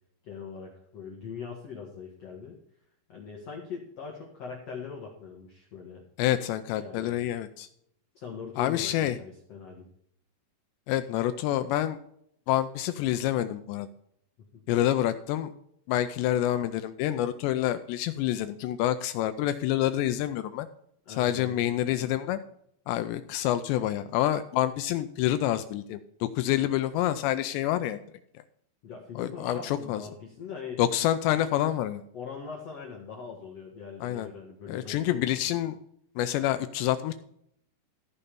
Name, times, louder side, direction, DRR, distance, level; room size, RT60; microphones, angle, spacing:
voice 1, 0.2-2.5 3.1-6.0 6.8-7.2 8.1-9.9 14.5-14.6 21.1-21.7 28.8-30.8 32.1-35.5, left 6 dB, 55° left, -1 dB, 2.0 m, -41 dB
voice 2, 6.2-7.7 8.6-9.2 10.9-12.0 12.5-13.9 14.7-15.5 15.9-20.7 21.2-22.4 22.9-28.0 29.2-30.0 30.8-32.0 34.0-34.3 34.7-35.8 36.2-37.1, left 12 dB, 80° left, 10 dB, 2.7 m, -27 dB
14.5 x 5.6 x 6.8 m, 0.70 s
omnidirectional pair, 5.2 m